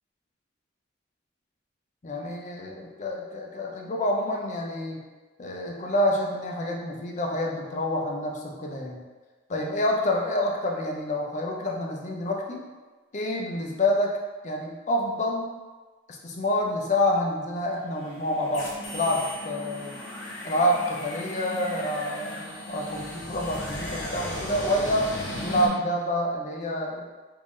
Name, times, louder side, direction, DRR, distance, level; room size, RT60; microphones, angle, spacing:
voice 1, 2.0-5.1 5.4-9.0 9.5-12.6 13.1-14.1 14.4-15.5 16.2-19.9 20.4-25.1 25.4-27.1, left 1 dB, 40° left, 0 dB, 0.4 m, -27 dB
sound 1, 17.9-25.7, left 1 dB, 80° left, 0.9 m, -36 dB
3.6 x 2.6 x 3.1 m, 1.3 s
head